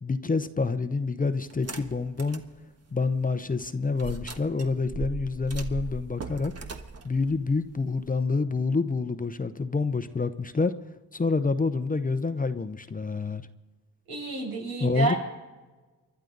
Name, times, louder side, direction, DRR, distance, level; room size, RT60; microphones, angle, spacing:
voice 1, 0.0-2.4 2.9-6.5 7.0-10.7 11.1-13.4 14.8-15.1, left 4 dB, 25° left, 0.8 m, -27 dB
sound 1, 1.5-2.5 3.0-3.1 4.0-8.2, right 4 dB, 45° right, 1.4 m, -38 dB
voice 2, 14.1-15.2, right 3 dB, 85° right, 6.4 m, -29 dB
29.5 x 11.5 x 3.9 m
cardioid pair, 95°, 36 cm